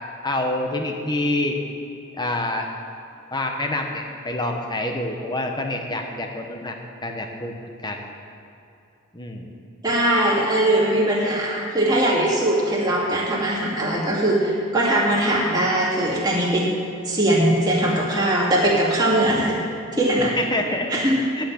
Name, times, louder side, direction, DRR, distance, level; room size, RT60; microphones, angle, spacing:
voice 1, 0.2-1.6 2.2-2.7 3.3-6.8 7.0-7.6 7.8-8.0 9.1-9.5 20.2-20.9 21.3-21.4, left 1 dB, 20° left, 3 dB, 1.0 m, -26 dB
voice 2, 9.8-16.7 17.0-19.6 20.0-20.4 20.9-21.3, right 1 dB, 20° right, -5 dB, 2.3 m, -20 dB
10.5 x 5.9 x 8.6 m, 2.7 s
head